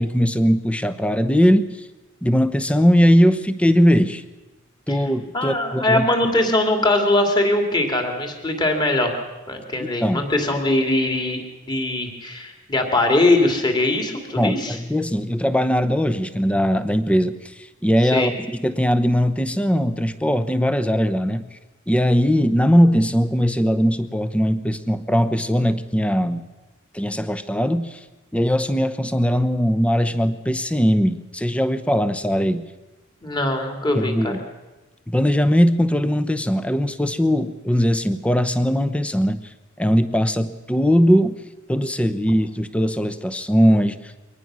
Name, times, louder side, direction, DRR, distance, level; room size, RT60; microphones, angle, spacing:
voice 1, 0.0-1.9 2.2-4.2 4.9-6.1 9.8-10.3 14.4-21.6 21.9-26.4 26.9-28.0 28.3-32.7 33.9-34.4 35.1-39.4 39.8-41.4 41.7-44.1, equal, 5° left, 12 dB, 0.8 m, -20 dB
voice 2, 5.3-9.2 9.5-11.4 11.7-14.8 18.1-18.3 33.2-34.3, left 2 dB, 20° left, 3 dB, 2.7 m, -21 dB
23.5 x 18.5 x 6.3 m, 1.1 s
head